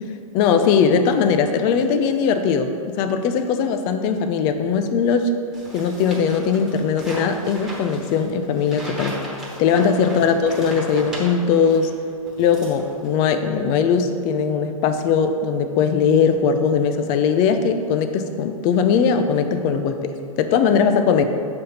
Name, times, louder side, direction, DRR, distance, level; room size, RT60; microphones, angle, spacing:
voice 1, 0.3-5.3 5.7-9.2 9.6-11.9 12.4-21.3, left 6 dB, 20° left, 8 dB, 0.4 m, -20 dB
sound 1, 5.5-11.9 12.3-13.2, right 1 dB, 5° right, 1.1 m, -36 dB
6.4 x 4.2 x 5.5 m, 2.5 s
hypercardioid pair, 145°, 18 cm